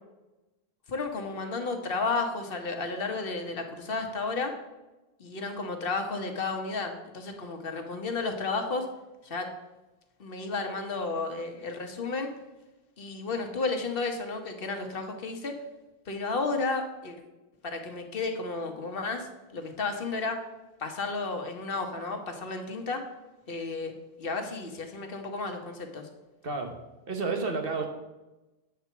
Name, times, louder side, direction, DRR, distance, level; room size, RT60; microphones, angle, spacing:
voice 1, 0.9-4.5 5.2-8.9 9.2-9.5 10.2-12.3 13.0-15.5 16.1-17.2 17.6-20.4 20.8-23.1 23.5-23.9 24.2-26.1, left 3 dB, 65° left, 5 dB, 1.2 m, -32 dB
voice 2, 26.4-26.8 27.1-27.9, right 3 dB, 65° right, 4 dB, 1.3 m, -30 dB
8.1 x 4.5 x 6.8 m, 1.1 s
omnidirectional pair, 1.0 m